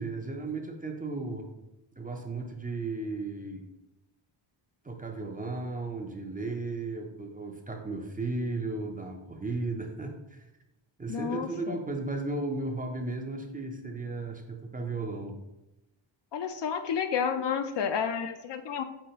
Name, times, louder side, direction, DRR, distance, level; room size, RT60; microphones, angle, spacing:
voice 1, 0.0-1.5 2.0-3.6 4.8-10.4 11.0-15.4, right 3 dB, 20° right, 2 dB, 0.5 m, -35 dB
voice 2, 11.1-11.8 16.3-18.8, left 7 dB, 60° left, 8 dB, 0.5 m, -31 dB
5.6 x 2.9 x 2.9 m, 0.94 s
cardioid pair, 85°, 49 cm